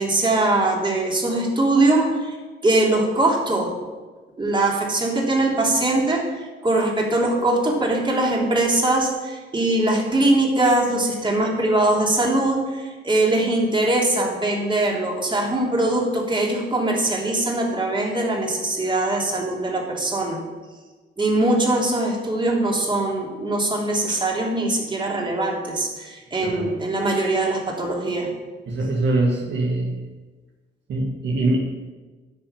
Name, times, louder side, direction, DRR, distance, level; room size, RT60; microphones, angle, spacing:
voice 1, 0.0-2.4 2.6-3.7 4.4-20.4 21.2-28.3, right 2 dB, 25° right, -2 dB, 3.3 m, -22 dB
voice 2, 28.7-30.0 30.9-31.6, right 2 dB, 65° right, -1 dB, 2.0 m, -23 dB
10.5 x 6.1 x 8.8 m, 1.3 s
cardioid pair, 90°, 20 cm